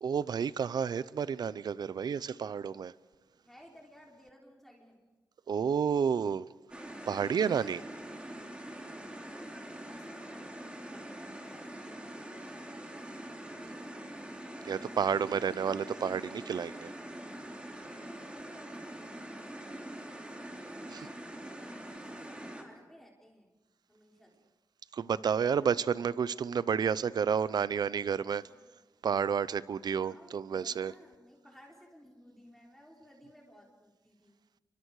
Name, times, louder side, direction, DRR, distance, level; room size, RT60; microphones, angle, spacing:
voice 1, 0.0-2.9 5.5-6.5 7.1-7.8 14.6-16.9 20.9-21.1 24.9-28.4 29.0-30.9, right 7 dB, 70° right, 0.6 m, -30 dB
voice 2, 3.4-5.0 9.5-12.6 13.4-14.2 17.9-19.9 21.2-23.5 23.9-24.4 25.3-25.8 28.4-28.7 30.0-34.3, equal, 5° left, 3.8 m, -58 dB
sound 1, 6.7-22.6, right 1 dB, 15° right, 3.4 m, -44 dB
28.5 x 24.0 x 4.8 m
wide cardioid pair, 100°, 7 cm